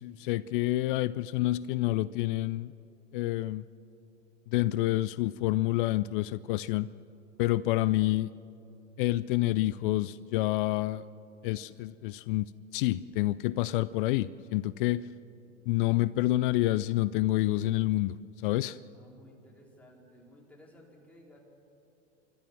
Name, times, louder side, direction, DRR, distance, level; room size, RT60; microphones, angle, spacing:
voice 1, 0.0-2.7 3.1-3.6 4.5-6.9 7.4-8.3 9.0-11.0 11.4-15.1 15.7-18.2 18.4-18.8, left 17 dB, 45° left, 18 dB, 0.4 m, -28 dB
voice 2, 18.9-21.4, equal, 5° left, -3 dB, 4.4 m, -56 dB
30.0 x 13.5 x 7.4 m, 2.8 s
hypercardioid pair, 95°, 37 cm